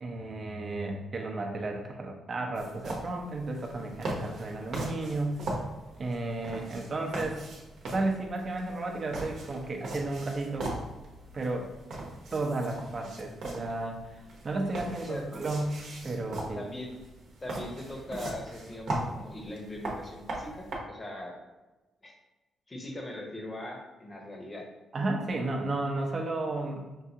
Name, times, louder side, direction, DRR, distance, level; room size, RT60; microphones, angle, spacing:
voice 1, 0.0-5.4 6.0-7.5 7.8-10.7 11.3-11.7 12.3-14.2 14.4-16.6 24.9-26.8, right 2 dB, 35° right, 1 dB, 0.7 m, -33 dB
sound 1, 2.5-20.8, right 1 dB, 65° right, 1.0 m, -39 dB
voice 2, 16.5-16.9 17.4-21.3 22.0-22.2 22.7-24.7, left 1 dB, 25° left, 1 dB, 0.8 m, -40 dB
5.6 x 2.4 x 2.8 m, 1.1 s
cardioid pair, 120°, 0 cm